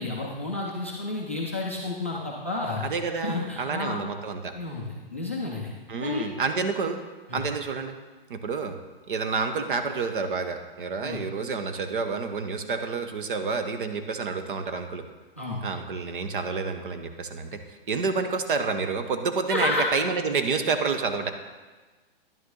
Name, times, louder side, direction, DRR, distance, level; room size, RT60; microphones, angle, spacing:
voice 1, 0.0-2.8 3.2-4.0 4.5-5.7 6.0-6.3 7.3-7.4 11.0-11.2 15.4-15.6 19.5-19.9, left 2 dB, 15° left, -3 dB, 0.3 m, -30 dB
voice 2, 2.8-4.5 5.9-7.0 7.3-7.9 8.3-8.8 9.1-15.0 15.6-21.3, right 4 dB, 60° right, 7 dB, 0.9 m, -29 dB
10.5 x 6.6 x 3.8 m, 1.3 s
hypercardioid pair, 165°, 29 cm